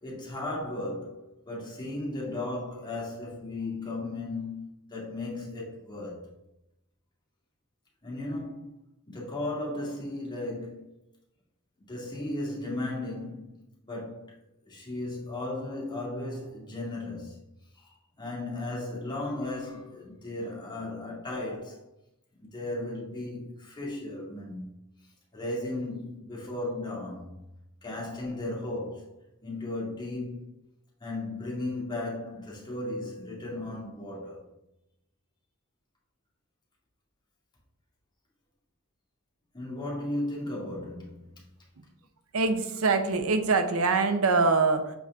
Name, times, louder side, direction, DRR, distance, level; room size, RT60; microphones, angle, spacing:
voice 1, 0.0-6.3 8.0-8.8 9.1-10.9 11.9-14.3 14.7-17.4 17.7-17.9 18.2-21.8 22.4-24.7 25.3-27.4 27.8-29.1 29.4-30.5 31.0-34.5 39.5-41.2, left 2 dB, 20° left, 2.0 m, -35 dB
voice 2, 42.3-45.0, right 4 dB, 85° right, 0.7 m, -24 dB
7.1 x 4.2 x 3.5 m
head